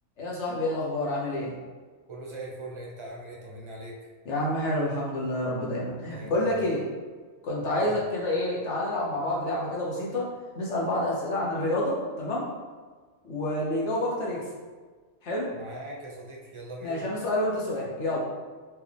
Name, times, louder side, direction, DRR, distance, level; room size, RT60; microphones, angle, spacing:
voice 1, 0.2-1.5 4.2-6.8 7.4-10.2 10.5-12.4 13.2-14.4 15.2-15.5 16.8-18.2, left 1 dB, 60° left, -5 dB, 1.3 m, -28 dB
voice 2, 2.1-4.1 6.1-6.6 7.8-8.0 15.5-17.1, right 1 dB, 30° right, -2 dB, 0.6 m, -41 dB
4.3 x 3.0 x 3.4 m, 1.4 s
omnidirectional pair, 1.4 m